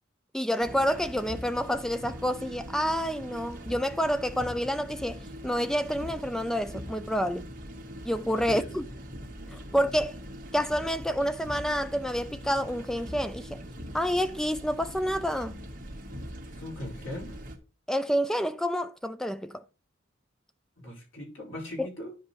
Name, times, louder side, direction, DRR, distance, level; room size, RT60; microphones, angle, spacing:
voice 1, 0.3-7.4 8.0-8.9 9.5-10.1 10.5-13.6 13.9-15.5 17.9-19.6 21.8-21.9, equal, 5° left, 0.3 m, -28 dB
sound 1, 0.6-17.6, equal, 45° right, 1.9 m, -42 dB
voice 2, 8.5-8.8 9.7-10.0 16.5-17.4 20.8-22.2, left 1 dB, 85° left, 5.1 m, -40 dB
10.5 x 5.5 x 4.0 m
head